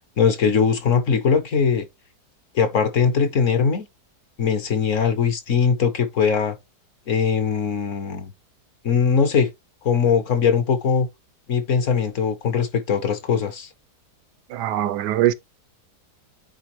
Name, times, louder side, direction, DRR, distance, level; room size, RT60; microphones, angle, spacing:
voice 1, 0.2-1.8 2.5-3.9 4.4-6.6 7.1-8.3 8.8-9.5 9.8-11.1 11.5-13.7, left 6 dB, 55° left, 1.1 m, -20 dB
voice 2, 14.5-15.3, right 13 dB, 85° right, 1.2 m, -22 dB
9.2 x 4.0 x 3.0 m
omnidirectional pair, 1.8 m